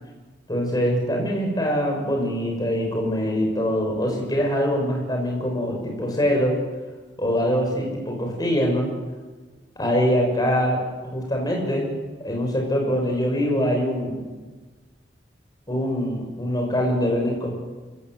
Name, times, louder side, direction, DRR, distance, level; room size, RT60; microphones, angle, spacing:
voice 1, 0.5-6.6 7.2-8.9 9.8-11.9 12.2-14.3 15.7-17.5, equal, 20° left, 0 dB, 6.2 m, -23 dB
25.0 x 16.5 x 7.9 m, 1.3 s
head